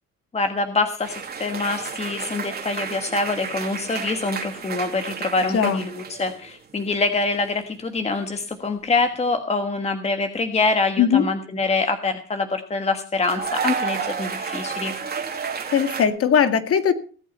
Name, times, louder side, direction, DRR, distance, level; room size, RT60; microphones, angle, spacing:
voice 1, 0.3-14.9, left 3 dB, 20° left, 7 dB, 1.4 m, -25 dB
sound 1, 1.0-6.5 6.8-7.3 9.1-9.4 13.2-16.1, right 6 dB, 30° right, 2.6 m, -31 dB
voice 2, 15.7-16.9, left 7 dB, 50° left, 9 dB, 2.1 m, -19 dB
19.0 x 8.4 x 5.5 m, 0.41 s
cardioid pair, 105°, 30 cm